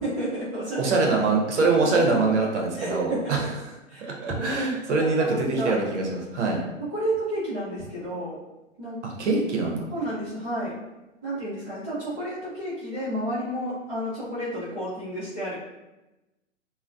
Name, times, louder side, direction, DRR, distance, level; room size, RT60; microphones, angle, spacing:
voice 1, 0.0-1.1 1.8-2.3 2.8-3.5 3.9-4.5 4.9-5.8 6.8-8.4 8.8-9.0 9.9-10.7 11.2-15.5, right 1 dB, 5° right, -15 dB, 0.3 m, -31 dB
voice 2, 0.8-3.4 4.0-6.6 9.0-9.9, right 3 dB, 60° right, 0 dB, 0.7 m, -24 dB
2.6 x 2.1 x 2.2 m, 1.0 s
figure-of-eight pair, 125°, 39 cm